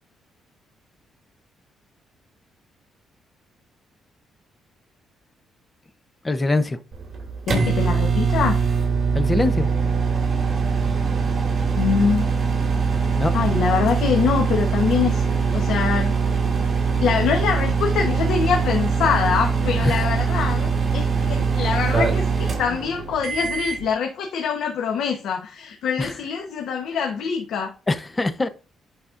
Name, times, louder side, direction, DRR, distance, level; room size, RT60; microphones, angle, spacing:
voice 1, 6.2-6.8 9.1-9.7 13.2-13.3 19.8-20.1 26.0-26.2 27.9-28.5, left 2 dB, 20° left, 0.9 m, -23 dB
sound 1, 6.9-23.9, right 5 dB, 45° right, 2.5 m, -22 dB
voice 2, 7.5-8.6 11.8-12.3 13.3-16.1 17.0-27.7, left 6 dB, 80° left, 1.1 m, -24 dB
10.5 x 4.1 x 2.6 m
cardioid pair, 90°, 0 cm